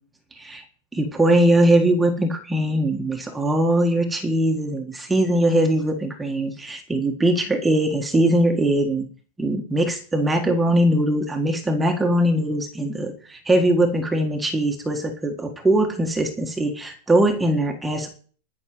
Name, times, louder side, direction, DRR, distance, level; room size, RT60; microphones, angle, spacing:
voice 1, 0.9-9.1 9.4-18.1, right 1 dB, 10° right, 4 dB, 1.6 m, -21 dB
12.0 x 6.5 x 9.2 m, 0.41 s
supercardioid pair, 160°, 0 cm